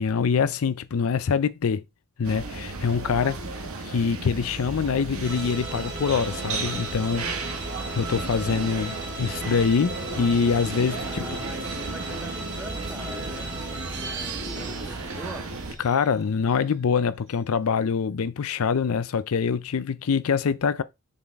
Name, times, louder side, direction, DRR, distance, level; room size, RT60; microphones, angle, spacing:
voice 1, 0.0-1.8 2.2-3.4 3.8-7.3 7.6-11.2 15.8-20.8, left 6 dB, 70° left, 0.4 m, -25 dB
sound 1, 2.2-15.7, right 3 dB, 75° right, 1.6 m, -34 dB
sound 2, 5.2-16.7, right 3 dB, 50° right, 2.3 m, -37 dB
voice 2, 11.0-15.5, equal, 5° right, 1.0 m, -42 dB
7.3 x 3.9 x 3.5 m
head